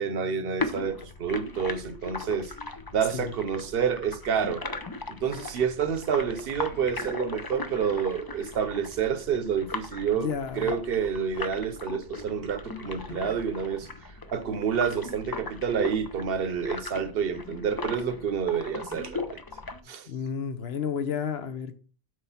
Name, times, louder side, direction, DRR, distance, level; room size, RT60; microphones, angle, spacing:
voice 1, 0.0-2.5 2.9-4.6 5.1-19.4 19.9-20.1, right 7 dB, 60° right, 1.0 m, -29 dB
sound 1, 0.6-19.8, left 3 dB, 30° left, 0.4 m, -38 dB
voice 2, 10.2-10.7 20.1-21.8, left 7 dB, 65° left, 1.1 m, -31 dB
6.5 x 4.7 x 5.6 m
omnidirectional pair, 1.1 m